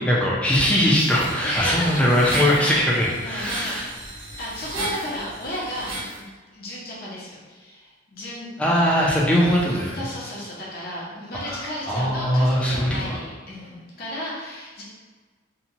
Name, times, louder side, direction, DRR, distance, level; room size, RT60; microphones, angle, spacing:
voice 1, 0.0-3.8 8.6-10.0 11.4-13.2, equal, 5° left, -5 dB, 0.4 m, -21 dB
sound 1, 0.9-6.2, right 1 dB, 90° right, 0.7 m, -35 dB
voice 2, 1.4-2.6 3.2-4.1 4.4-5.9 6.2-6.3 6.5-8.5 9.9-14.8, equal, 50° left, -6 dB, 0.7 m, -33 dB
2.8 x 2.2 x 2.8 m, 1.4 s
head